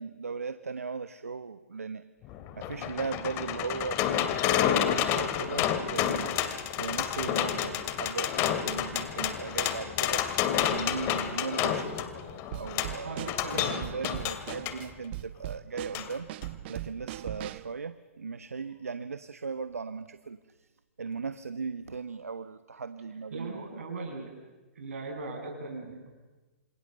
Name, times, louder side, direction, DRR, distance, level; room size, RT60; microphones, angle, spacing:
voice 1, 0.0-2.1 2.6-6.3 6.8-10.2 10.7-13.3 13.5-16.3 16.7-20.7 21.0-23.8, right 5 dB, 85° right, 12 dB, 1.1 m, -38 dB
sound 1, 2.2-14.8 15.9-16.1 16.4-16.5, left 10 dB, 35° left, 2.6 m, -30 dB
voice 2, 7.2-7.5 13.0-14.1 23.3-24.4 24.7-26.1, right 3 dB, 70° right, 4 dB, 7.4 m, -39 dB
Drum kit / Snare drum, 12.5-17.7, right 15 dB, 50° right, 1.0 m, -40 dB
28.0 x 27.5 x 6.8 m, 1.2 s
hypercardioid pair, 120°, 8 cm